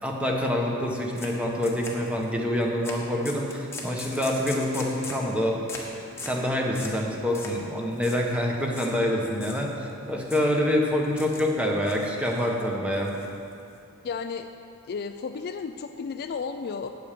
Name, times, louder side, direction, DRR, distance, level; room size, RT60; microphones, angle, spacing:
voice 1, 0.0-5.6 6.2-13.1, left 1 dB, 5° right, -1 dB, 1.2 m, -26 dB
sound 1, 1.2-1.3 1.6-2.3 2.8-3.0 3.2-5.3 5.7-5.9 6.2-6.4 6.7-7.0 7.3-7.6 7.9-8.2 8.7-8.9 9.3-9.9 10.3-10.5 11.0-11.5 11.8-12.5 12.9-13.7, left 3 dB, 10° left, 1.3 m, -40 dB
voice 2, 14.0-14.5 14.9-16.9, left 5 dB, 45° left, 8 dB, 0.4 m, -33 dB
8.7 x 8.3 x 6.8 m, 2.6 s
head